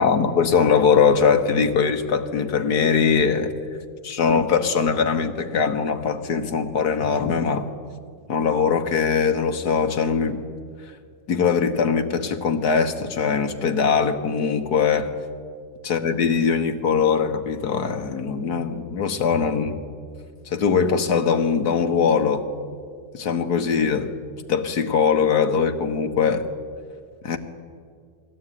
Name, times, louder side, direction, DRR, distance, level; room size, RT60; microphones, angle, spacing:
voice 1, 0.0-3.6 4.0-7.7 8.3-10.4 11.3-15.1 15.8-19.8 20.5-22.4 23.1-24.1 24.5-26.5 27.2-27.4, left 6 dB, 80° left, 6 dB, 1.9 m, -21 dB
22.0 x 17.5 x 9.3 m, 2.1 s
omnidirectional pair, 1.7 m